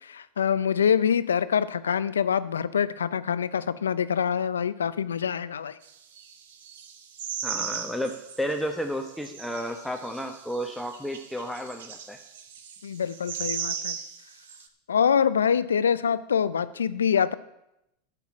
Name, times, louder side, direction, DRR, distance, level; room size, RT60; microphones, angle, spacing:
voice 1, 0.0-5.8 12.8-13.9 14.9-17.3, left 7 dB, 85° left, 16 dB, 0.5 m, -25 dB
sound 1, 5.8-8.6 9.1-14.7, right 7 dB, 75° right, 1.2 m, -37 dB
voice 2, 7.4-12.2, equal, ahead, 3 dB, 1.0 m, -32 dB
8.2 x 6.8 x 8.5 m, 0.85 s
hypercardioid pair, 95°, 0 cm